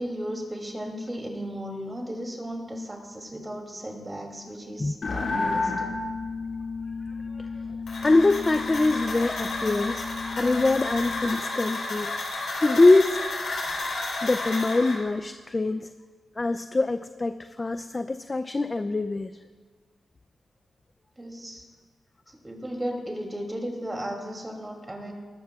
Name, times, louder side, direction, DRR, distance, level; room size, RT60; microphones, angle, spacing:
voice 1, 0.0-5.9 21.2-21.6 22.4-25.1, equal, 20° right, 1 dB, 2.8 m, -35 dB
voice 2, 4.8-5.2 7.4-7.5 8.0-12.1 12.6-13.2 14.2-15.9 16.4-19.3, left 2 dB, 30° left, 10 dB, 0.4 m, -24 dB
sound 1, 5.0-11.4, left 3 dB, 60° left, 2.3 m, -32 dB
sound 2, 7.9-14.9, left 2 dB, 80° left, 4.0 m, -32 dB
19.5 x 13.0 x 2.4 m, 1.5 s
cardioid pair, 75°, 0 cm